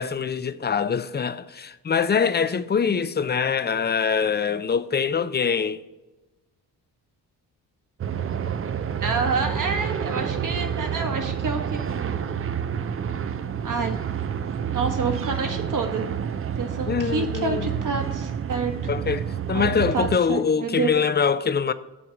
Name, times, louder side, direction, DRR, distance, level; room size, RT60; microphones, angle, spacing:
voice 1, 0.0-5.8 16.9-17.7 18.9-21.7, left 6 dB, 25° left, 0.5 m, -24 dB
sound 1, 8.0-20.2, right 8 dB, 35° right, 0.5 m, -29 dB
voice 2, 9.0-12.1 13.6-13.9 14.7-16.0 16.5-18.7 19.5-20.9, right 4 dB, 50° right, 1.5 m, -28 dB
8.5 x 3.6 x 6.5 m
cardioid pair, 65°, 40 cm